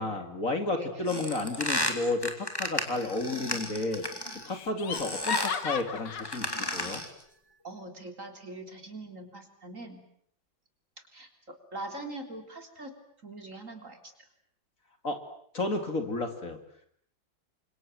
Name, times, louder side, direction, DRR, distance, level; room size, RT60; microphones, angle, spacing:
voice 1, 0.0-4.0 4.4-7.0 15.0-15.2 15.5-16.6, left 2 dB, 45° left, 6 dB, 3.1 m, -32 dB
voice 2, 0.7-1.0 7.6-10.0 11.1-12.9 13.2-14.1, right 2 dB, 40° right, 5 dB, 4.0 m, -42 dB
sound 1, 1.1-4.5 4.9-5.6 6.2-7.2, left 1 dB, 10° left, 3.2 m, -33 dB
Laughter, 3.2-3.7 4.0-4.1 4.5-7.0, left 6 dB, 65° left, 2.1 m, -36 dB
29.0 x 26.5 x 7.7 m, 0.67 s
omnidirectional pair, 2.1 m